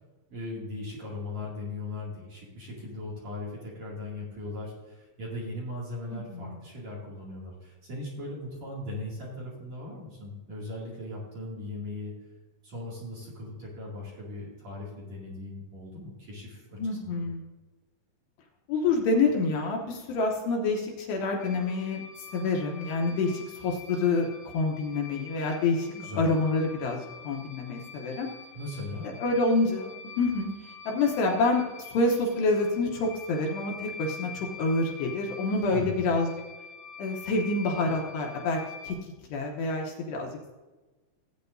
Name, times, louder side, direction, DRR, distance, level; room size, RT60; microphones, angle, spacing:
voice 1, 0.3-12.1 12.6-17.2 25.9-26.3 28.5-29.1 35.7-36.1, left 2 dB, 45° right, -6 dB, 3.0 m, -38 dB
voice 2, 6.1-6.5 16.8-17.4 18.7-22.0 22.3-24.3 24.5-25.9 26.2-27.0 27.2-28.3 29.2-29.9 30.2-36.3 37.0-38.6 38.8-38.9 39.3-40.5, left 3 dB, 75° left, 0 dB, 2.8 m, -27 dB
sound 1, 21.4-38.9, left 5 dB, 30° left, 3.5 m, -46 dB
17.0 x 8.8 x 2.7 m, 1.2 s
omnidirectional pair, 5.4 m